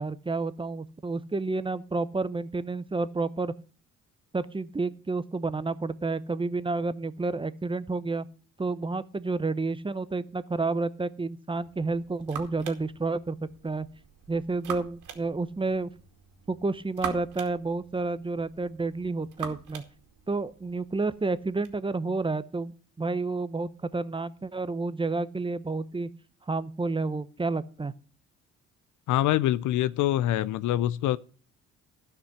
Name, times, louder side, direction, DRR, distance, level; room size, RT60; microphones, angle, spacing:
voice 1, 0.0-3.5 4.3-8.3 8.6-13.4 13.6-13.9 14.3-15.9 16.5-19.8 20.3-26.1 26.5-27.9, right 3 dB, 15° right, 0.8 m, -30 dB
sound 1, 11.6-21.8, right 8 dB, 85° right, 2.4 m, -44 dB
voice 2, 29.1-31.2, left 13 dB, 80° left, 0.6 m, -25 dB
12.5 x 6.0 x 6.5 m
cardioid pair, 90°, 30 cm